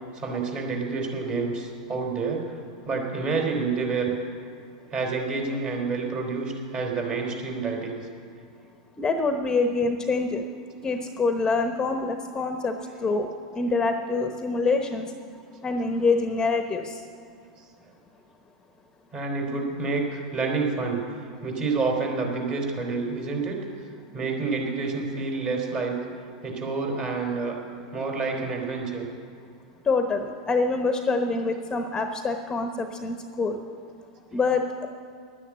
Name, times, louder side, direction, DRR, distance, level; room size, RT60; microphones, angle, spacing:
voice 1, 0.1-2.5 2.8-4.1 4.9-8.1 13.7-13.8 15.7-15.8 19.1-21.0 21.4-23.6 24.1-26.0 26.4-27.6 27.9-29.1, right 4 dB, 35° right, 1 dB, 3.9 m, -28 dB
voice 2, 9.0-10.4 10.8-13.3 13.5-15.1 15.6-17.0 29.9-33.6 34.3-34.9, left 3 dB, 20° left, 6 dB, 1.0 m, -25 dB
11.0 x 9.9 x 8.8 m, 2.3 s
hypercardioid pair, 110°, 4 cm